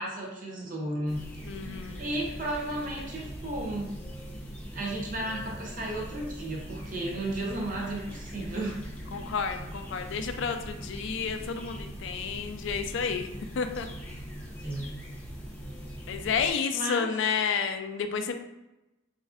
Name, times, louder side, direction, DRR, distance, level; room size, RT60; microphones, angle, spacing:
voice 1, 0.0-1.3 2.0-4.0 4.7-8.8 14.6-15.0 16.7-17.1, right 1 dB, 40° right, -1 dB, 0.6 m, -33 dB
sound 1, 1.1-16.5, equal, 10° left, 0.5 m, -41 dB
voice 2, 1.4-2.1 9.1-13.3 13.6-13.9 16.1-18.3, left 6 dB, 65° left, 7 dB, 0.3 m, -31 dB
4.0 x 2.5 x 2.4 m, 0.95 s
head